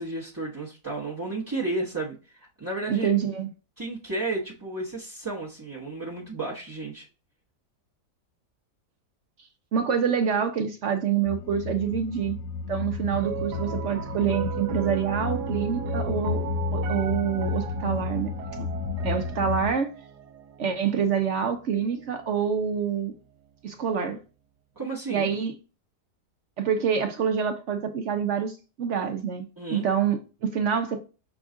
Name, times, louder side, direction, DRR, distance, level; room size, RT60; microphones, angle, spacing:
voice 1, 0.0-3.1 3.8-7.1 24.8-25.3 29.6-29.8, right 2 dB, 15° right, 0.7 m, -32 dB
voice 2, 2.9-3.5 9.7-12.4 12.7-16.4 16.7-18.3 18.6-18.7 19.0-19.9 20.6-23.1 23.6-24.2 25.1-25.5 26.6-31.0, right 7 dB, 65° right, 0.7 m, -26 dB
sound 1, 11.2-19.7, left 4 dB, 70° left, 0.9 m, -31 dB
Piano, 13.1-23.5, right 9 dB, 85° right, 1.2 m, -38 dB
6.1 x 2.3 x 3.7 m
omnidirectional pair, 1.8 m